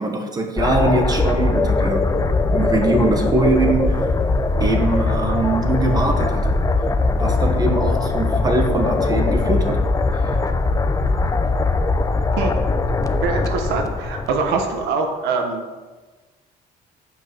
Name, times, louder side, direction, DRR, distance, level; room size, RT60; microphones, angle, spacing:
voice 1, 0.0-2.0 2.5-4.0 4.6-6.5 7.2-9.8 10.1-10.4, right 2 dB, 25° right, 3 dB, 1.4 m, -22 dB
sound 1, 0.6-14.8, left 3 dB, 20° left, 0.6 m, -20 dB
voice 2, 13.2-15.6, right 4 dB, 85° right, 4 dB, 1.3 m, -23 dB
8.6 x 5.4 x 6.2 m, 1.3 s
cardioid pair, 110°, 17 cm